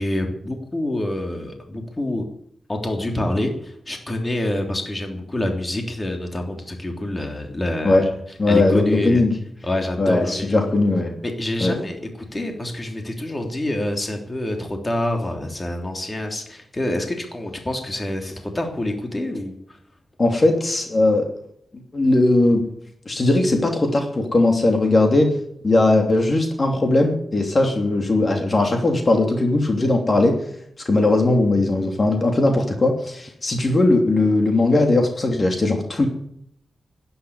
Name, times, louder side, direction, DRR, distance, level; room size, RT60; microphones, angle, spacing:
voice 1, 0.0-2.2 2.7-8.1 8.5-9.2 9.6-10.6 11.2-12.0 12.3-19.8, left 1 dB, 25° left, 3 dB, 3.3 m, -27 dB
voice 2, 8.4-9.3 10.0-11.1 11.6-11.8 20.2-21.3 21.9-22.7 23.1-25.3 25.6-30.3 30.8-36.1, left 2 dB, 40° left, 3 dB, 3.1 m, -18 dB
12.0 x 10.5 x 9.6 m, 0.70 s
cardioid pair, 65°, 0 cm